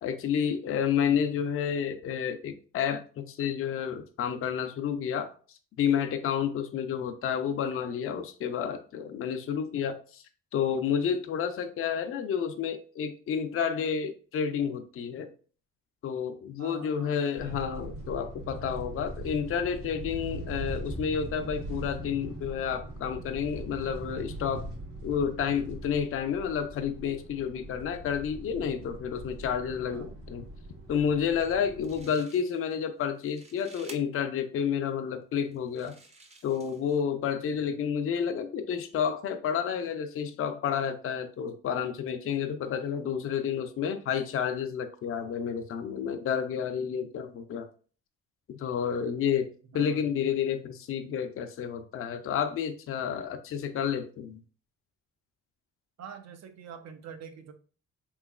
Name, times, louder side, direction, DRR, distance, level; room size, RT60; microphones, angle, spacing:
voice 1, 0.0-5.3 5.8-10.2 10.5-15.3 16.0-24.6 25.0-30.4 30.9-35.9 36.4-47.7 48.5-49.5 49.7-54.4, left 7 dB, 45° left, 7 dB, 0.5 m, -30 dB
voice 2, 0.8-1.3 6.8-7.0 16.6-17.6 29.9-30.1 31.9-32.1 37.3-37.9 49.7-50.0 56.0-57.5, right 6 dB, 60° right, 7 dB, 0.6 m, -46 dB
sound 1, 17.4-32.0, right 1 dB, 85° right, 1.2 m, -41 dB
sound 2, 31.5-31.6 31.8-32.8 33.1-34.0 34.7-34.8 35.5-37.0, right 2 dB, 20° right, 0.6 m, -52 dB
3.5 x 3.0 x 2.3 m, 0.40 s
cardioid pair, 90°, 30 cm